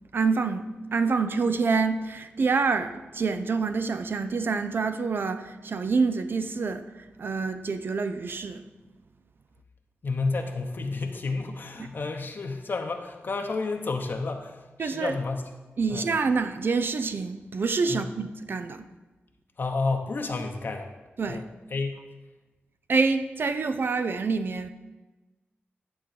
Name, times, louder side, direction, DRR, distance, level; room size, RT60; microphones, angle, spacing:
voice 1, 0.1-0.6 0.9-6.9 7.2-8.6 14.8-15.2 15.8-18.9 21.2-21.4 22.9-24.7, right 4 dB, 55° right, 9 dB, 0.5 m, -26 dB
voice 2, 10.0-15.5 15.9-16.1 17.9-18.1 19.6-20.9 21.3-21.4 21.7-21.9, left 3 dB, 50° left, 3 dB, 0.8 m, -30 dB
11.5 x 3.8 x 7.7 m, 1.2 s
wide cardioid pair, 125°, 4 cm